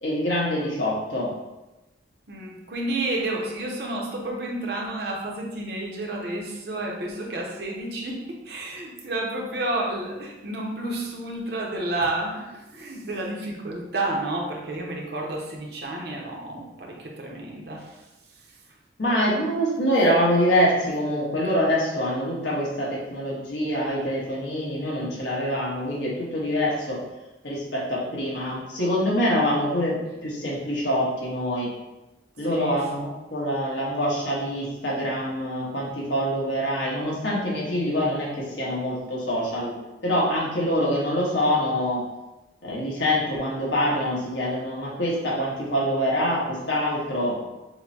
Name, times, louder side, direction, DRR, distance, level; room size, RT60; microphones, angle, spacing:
voice 1, 0.0-1.3 19.0-27.0 27.4-31.7 32.4-39.7 40.0-42.0 42.6-47.4, equal, 75° left, -5 dB, 1.3 m, -25 dB
voice 2, 2.3-18.0 32.5-32.8, right 2 dB, 60° right, -1 dB, 0.7 m, -31 dB
6.3 x 2.1 x 2.8 m, 1.0 s
head